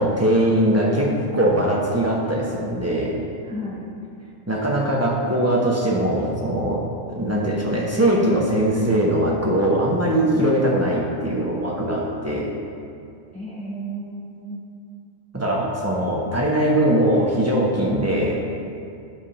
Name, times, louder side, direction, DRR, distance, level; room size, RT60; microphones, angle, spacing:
voice 1, 0.0-3.2 4.5-6.8 7.1-12.5 15.3-18.4, right 1 dB, 10° right, -3 dB, 1.0 m, -21 dB
voice 2, 3.4-3.8 10.3-10.5 13.3-14.6 16.2-16.3, right 1 dB, 5° left, -8 dB, 1.3 m, -33 dB
10.5 x 3.6 x 5.7 m, 2.4 s
omnidirectional pair, 1.4 m